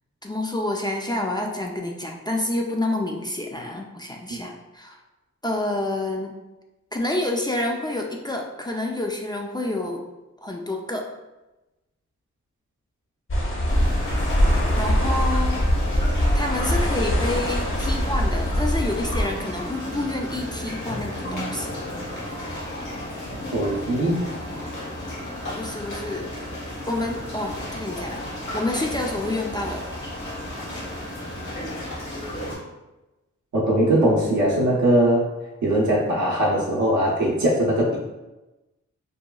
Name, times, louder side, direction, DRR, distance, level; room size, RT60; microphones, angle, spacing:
voice 1, 0.2-5.0 5.4-6.3 6.9-10.0 10.4-11.1 14.8-15.6 16.3-21.8 25.5-26.3 26.9-29.8, left 1 dB, 15° left, 0 dB, 0.3 m, -28 dB
sound 1, 13.3-19.2, equal, 45° left, 0.7 m, -22 dB
sound 2, 13.7-32.6, left 1 dB, 90° left, 1.0 m, -33 dB
voice 2, 23.5-24.2 33.5-35.2 35.6-38.0, right 1 dB, 75° right, -4 dB, 0.6 m, -20 dB
2.9 x 2.2 x 2.2 m, 1.0 s
cardioid pair, 55°, 29 cm